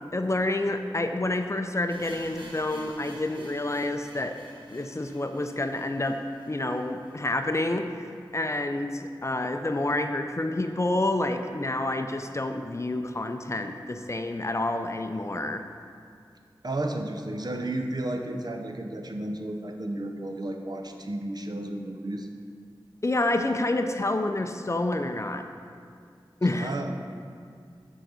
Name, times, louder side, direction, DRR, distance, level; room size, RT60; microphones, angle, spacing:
voice 1, 0.0-4.4 4.7-6.2 6.5-8.1 8.3-15.6 23.0-25.5 26.4-26.7, left 2 dB, 35° left, 6 dB, 0.5 m, -28 dB
sound 1, 1.9-7.8 8.1-8.2 8.4-8.5 9.1-9.2, right 1 dB, 70° right, 1.2 m, -50 dB
voice 2, 16.6-22.3 26.6-27.0, right 1 dB, 50° right, 4 dB, 0.6 m, -33 dB
7.7 x 3.8 x 6.1 m, 2.3 s
wide cardioid pair, 50°, 9 cm